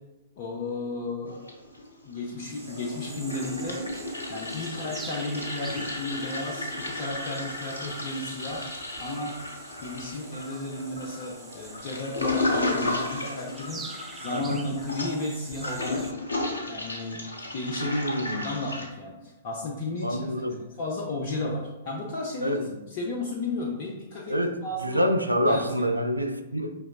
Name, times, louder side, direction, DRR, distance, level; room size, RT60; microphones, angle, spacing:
voice 1, 0.4-1.4 2.0-3.8 4.3-8.7 9.0-9.4 9.8-13.9 14.1-16.0 16.7-17.3 17.5-18.1 18.4-20.3 20.8-22.6 22.9-24.4 24.6-25.0 25.5-25.9, left 2 dB, 40° left, -2 dB, 0.5 m, -33 dB
Toilet flush, 1.3-2.1 2.4-18.9, left 2 dB, 70° left, 0.8 m, -34 dB
sound 1, 2.4-16.1, right 4 dB, 10° right, 0.4 m, -46 dB
voice 2, 14.3-14.6 17.8-18.5 20.0-20.6 22.4-22.8 24.3-24.6 24.8-26.8, equal, 85° right, 6 dB, 0.4 m, -27 dB
5.1 x 3.0 x 2.3 m, 1.1 s
figure-of-eight pair, 110°, 0 cm